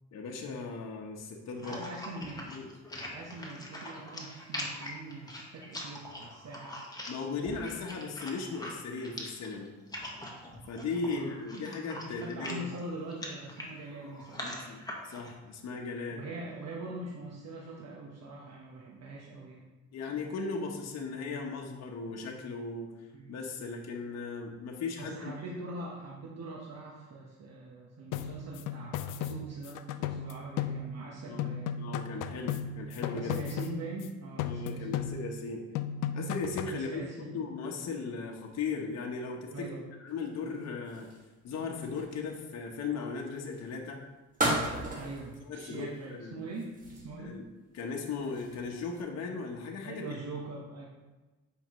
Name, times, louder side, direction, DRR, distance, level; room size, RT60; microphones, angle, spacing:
voice 1, 0.1-1.8 2.5-2.7 7.1-9.8 10.7-12.7 14.4-16.2 19.9-22.9 23.3-25.3 31.3-31.5 31.8-33.3 34.4-35.7 36.1-41.1 41.4-44.0 45.5-46.4 47.2-47.5 47.7-50.1, left 4 dB, 60° left, 0 dB, 1.1 m, -37 dB
sound 1, 1.6-15.3, left 1 dB, 10° left, 1.4 m, -43 dB
voice 2, 1.6-2.5 3.1-6.8 11.0-14.6 16.1-19.7 23.1-23.4 25.0-31.8 33.1-35.0 36.7-37.5 39.5-39.9 45.0-47.4 49.8-50.9, right 2 dB, 55° right, -3 dB, 1.2 m, -43 dB
sound 2, 28.1-31.1 31.4-34.1 34.4-35.5 35.7-36.8, left 7 dB, 90° left, 0.5 m, -36 dB
sound 3, 40.1-42.5 43.4-43.7 44.3-45.4 45.7-46.1 46.5-47.3 47.8-49.0, right 1 dB, 25° right, 2.1 m, -36 dB
8.5 x 5.6 x 3.1 m, 1.2 s
cardioid pair, 90°, 30 cm